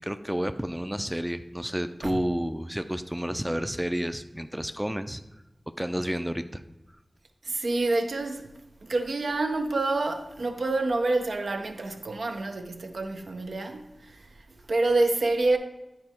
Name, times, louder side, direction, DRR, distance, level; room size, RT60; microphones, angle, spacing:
voice 1, 0.0-5.2 5.8-6.6, equal, 5° right, 0.4 m, -30 dB
voice 2, 7.4-8.5 8.8-15.6, right 2 dB, 80° right, 0.7 m, -27 dB
9.6 x 4.4 x 4.4 m
wide cardioid pair, 60°, 0 cm